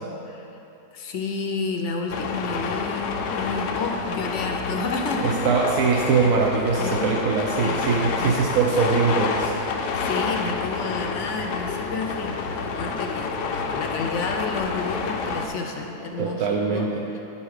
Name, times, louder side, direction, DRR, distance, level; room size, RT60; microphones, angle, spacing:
voice 1, 0.9-5.4 6.8-8.4 9.9-17.0, left 3 dB, 60° left, 2 dB, 0.8 m, -31 dB
sound 1, 2.1-15.5, left 5 dB, 90° left, 1.3 m, -28 dB
voice 2, 5.2-9.5 16.2-17.0, right 5 dB, 65° right, 0 dB, 0.9 m, -22 dB
sound 2, 6.8-16.4, equal, 50° right, 2.2 m, -44 dB
10.5 x 5.5 x 4.8 m, 2.9 s
omnidirectional pair, 1.8 m